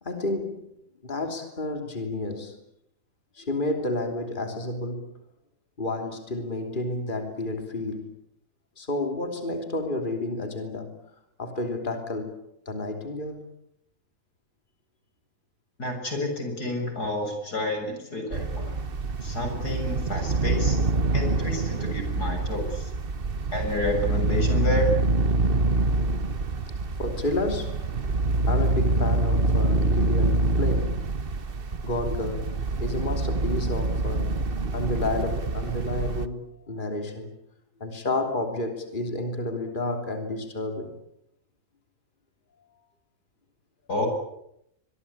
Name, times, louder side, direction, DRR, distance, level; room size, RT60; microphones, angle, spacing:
voice 1, 0.0-2.6 3.3-5.1 5.8-8.1 8.8-11.0 11.4-12.4 12.6-13.5 27.0-27.9 28.4-31.0 31.8-34.4 34.7-37.3 37.8-41.0, left 2 dB, 30° left, 3.3 m, -31 dB
voice 2, 15.8-18.8 19.2-20.8 21.1-22.9 23.5-24.9 43.9-44.1, left 1 dB, 85° left, 7.7 m, -30 dB
sound 1, 18.3-36.3, right 2 dB, 40° right, 1.3 m, -26 dB
25.0 x 23.0 x 8.6 m
omnidirectional pair, 1.7 m